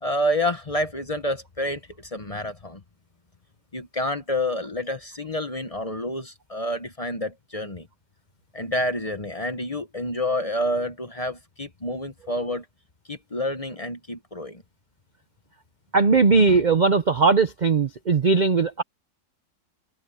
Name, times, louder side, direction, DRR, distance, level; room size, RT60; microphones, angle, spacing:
voice 1, 0.0-2.8 3.7-7.9 8.5-12.6 13.1-14.6, left 1 dB, 25° left, 1.0 m, -28 dB
voice 2, 15.9-18.8, right 4 dB, 45° right, 0.6 m, -19 dB
omnidirectional pair, 1.7 m